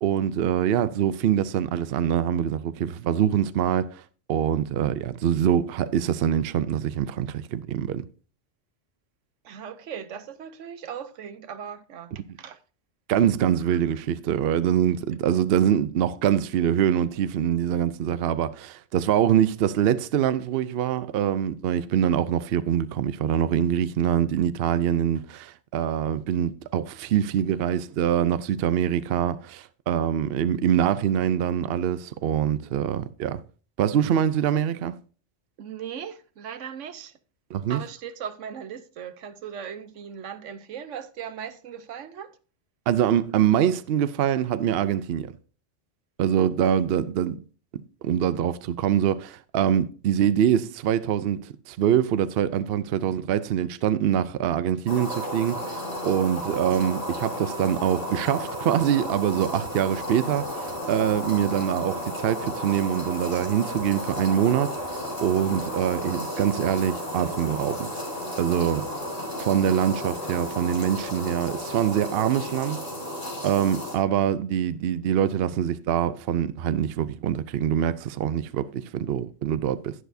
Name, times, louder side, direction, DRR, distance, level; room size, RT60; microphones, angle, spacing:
voice 1, 0.0-4.0 4.3-8.0 13.1-33.4 33.8-34.9 37.5-37.8 42.9-45.3 46.2-47.4 48.0-64.8 65.2-68.0 68.4-68.9 69.4-72.8 73.4-79.9, right 9 dB, 65° right, 0.7 m, -24 dB
voice 2, 9.4-12.1 12.4-12.6 35.6-37.1 37.7-42.3 73.0-73.1, right 8 dB, 80° right, 1.1 m, -38 dB
sound 1, 54.9-73.9, equal, 30° left, 3.5 m, -33 dB
11.0 x 10.0 x 2.6 m
omnidirectional pair, 1.2 m